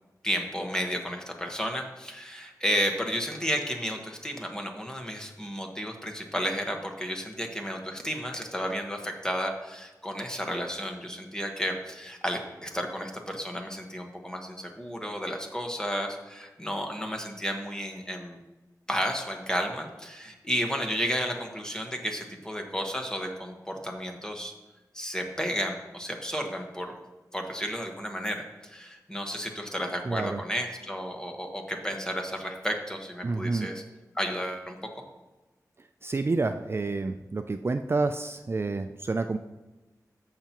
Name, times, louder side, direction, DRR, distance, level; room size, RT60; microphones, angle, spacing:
voice 1, 0.2-18.4 18.9-24.5 24.9-26.9 27.3-33.8 34.1-34.9, equal, 10° left, 3 dB, 1.3 m, -32 dB
voice 2, 30.1-30.4 33.2-33.7 36.0-39.4, right 3 dB, 40° right, 8 dB, 0.3 m, -29 dB
14.0 x 5.8 x 3.0 m, 1.1 s
wide cardioid pair, 75°, 7 cm